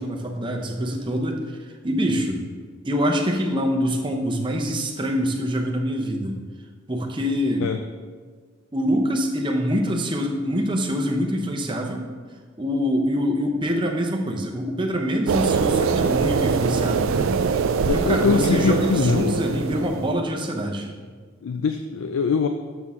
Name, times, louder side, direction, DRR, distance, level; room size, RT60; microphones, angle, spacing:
voice 1, 0.0-1.4 1.8-2.4 2.8-6.4 6.9-7.7 8.7-12.1 12.6-17.4 17.8-20.9, equal, 20° right, 1 dB, 0.7 m, -25 dB
sound 1, 15.3-20.1, right 5 dB, 70° right, 0.3 m, -23 dB
voice 2, 17.9-19.4 21.4-22.5, left 5 dB, 80° left, 7 dB, 0.4 m, -22 dB
7.1 x 6.2 x 3.7 m, 1.5 s
head